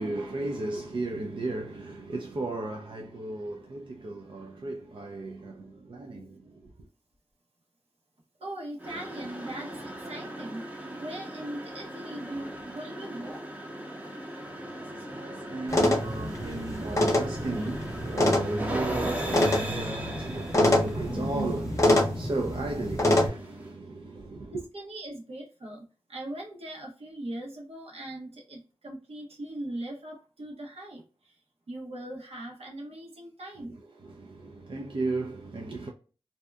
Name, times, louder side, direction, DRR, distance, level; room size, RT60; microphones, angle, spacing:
voice 1, 0.0-6.9 14.4-24.7 33.6-35.9, right 2 dB, 55° right, 0.4 m, -35 dB
voice 2, 8.4-13.4 24.5-31.4 31.7-33.8, right 1 dB, 80° right, 1.0 m, -40 dB
sound 1, 8.8-23.7, right 1 dB, 15° right, 0.6 m, -39 dB
sound 2, 15.7-23.3, left 1 dB, 30° left, 0.7 m, -26 dB
2.7 x 2.2 x 2.2 m
wide cardioid pair, 70°, 10 cm